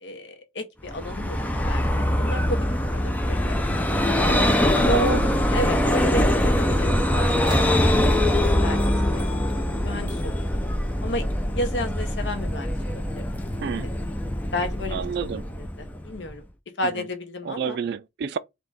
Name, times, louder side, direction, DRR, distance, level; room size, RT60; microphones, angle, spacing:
voice 1, 0.0-2.7 2.9-3.6 4.7-5.2 5.5-9.3 9.5-10.6 11.0-13.2 14.5-15.3 15.6-15.7 16.0-16.5 16.8-17.8, left 1 dB, 75° left, 1.0 m, -32 dB
Vehicle, 0.9-16.3, left 1 dB, 10° left, 0.5 m, -23 dB
voice 2, 4.8-5.3 13.6-13.9 14.9-15.5 16.9-17.1 17.4-18.4, right 6 dB, 60° right, 0.3 m, -30 dB
sound 1, 7.3-10.1 11.2-11.3, right 1 dB, 25° right, 1.5 m, -39 dB
3.6 x 2.9 x 4.0 m
head